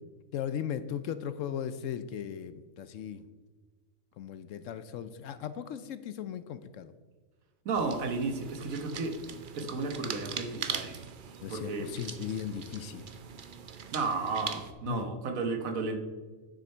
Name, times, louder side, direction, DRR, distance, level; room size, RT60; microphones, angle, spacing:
voice 1, 0.3-3.3 4.2-6.9 11.4-13.1 14.9-15.1, left 9 dB, 70° left, 13 dB, 0.9 m, -37 dB
voice 2, 7.6-9.1 9.6-11.0 11.5-11.9 13.9-16.0, right 4 dB, 70° right, 6 dB, 1.5 m, -33 dB
sound 1, 7.7-14.7, right 6 dB, 50° right, 0.7 m, -41 dB
9.9 x 6.6 x 4.4 m, 1.4 s
omnidirectional pair, 1.5 m